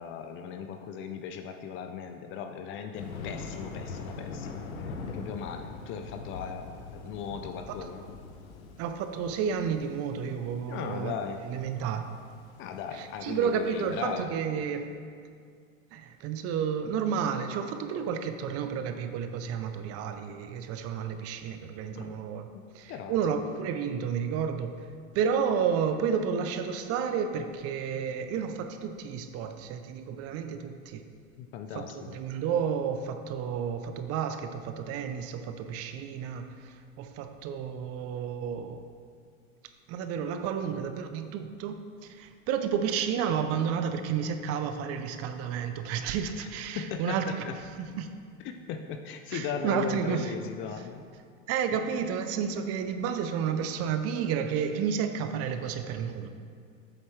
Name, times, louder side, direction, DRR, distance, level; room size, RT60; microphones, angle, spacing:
voice 1, 0.0-8.0 10.7-11.4 12.6-14.3 22.0-22.2 22.9-23.2 31.4-32.2 46.4-46.5 46.8-47.5 48.4-51.0, left 7 dB, 30° left, 6 dB, 0.4 m, -37 dB
Thunder, 2.9-14.1, left 4 dB, 85° left, 0.9 m, -42 dB
voice 2, 8.8-11.2 11.4-12.1 12.9-14.9 15.9-22.5 22.7-24.7 25.1-31.0 31.7-38.9 39.9-47.5 48.0-48.1 49.3-50.3 51.5-56.3, right 7 dB, 40° right, 8 dB, 0.5 m, -31 dB
7.9 x 7.1 x 3.2 m, 2.2 s
hypercardioid pair, 105°, 40 cm